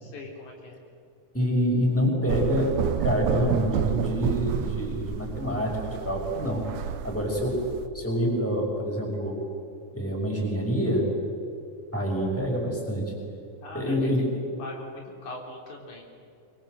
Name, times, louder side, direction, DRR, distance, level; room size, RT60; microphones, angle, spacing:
voice 1, 0.0-0.8 13.6-14.1 14.6-16.0, left 2 dB, 75° left, 0 dB, 4.9 m, -41 dB
voice 2, 1.3-6.6 7.0-7.7 7.9-9.4 9.9-11.1 11.9-13.1 13.7-14.3, equal, 5° left, -1 dB, 5.5 m, -26 dB
sound 1, 2.3-7.9, right 10 dB, 80° right, 2.2 m, -30 dB
24.5 x 23.5 x 7.9 m, 2.5 s
omnidirectional pair, 3.5 m